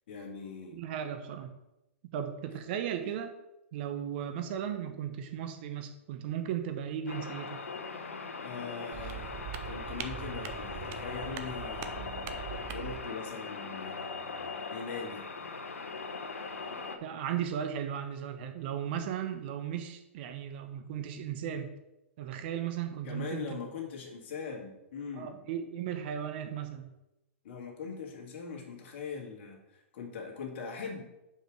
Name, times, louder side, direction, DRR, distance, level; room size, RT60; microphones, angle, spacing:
voice 1, 0.1-0.8 8.4-9.3 9.6-12.3 12.7-14.4 14.7-15.2 23.0-25.4 27.4-31.0, left 5 dB, 55° left, 0 dB, 2.1 m, -41 dB
voice 2, 0.7-1.5 2.1-3.3 3.7-7.6 17.0-21.7 22.2-23.6 25.2-26.9, right 9 dB, 50° right, 7 dB, 1.0 m, -36 dB
sound 1, 7.1-17.0, left 4 dB, 80° left, 0.9 m, -40 dB
sound 2, 8.9-13.0, right 11 dB, 35° right, 0.6 m, -42 dB
5.3 x 5.1 x 6.2 m, 0.93 s
hypercardioid pair, 110°, 7 cm